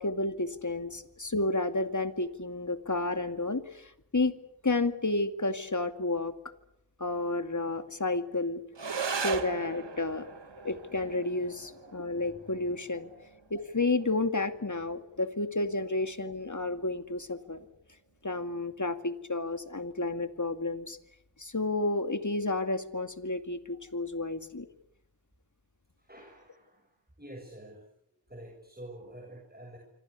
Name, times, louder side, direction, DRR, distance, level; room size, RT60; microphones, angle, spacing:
voice 1, 0.0-4.4 4.6-6.3 7.0-8.6 9.1-10.3 10.6-13.1 13.5-17.6 18.2-21.0 21.4-24.7, left 2 dB, 45° left, 9 dB, 2.4 m, -31 dB
sound 1, 8.7-17.7, right 5 dB, 85° right, 1.5 m, -40 dB
voice 2, 26.0-26.9 27.2-27.8 28.3-29.8, right 1 dB, 20° right, 0 dB, 7.3 m, -48 dB
26.5 x 25.5 x 8.4 m, 0.77 s
wide cardioid pair, 45°, 42 cm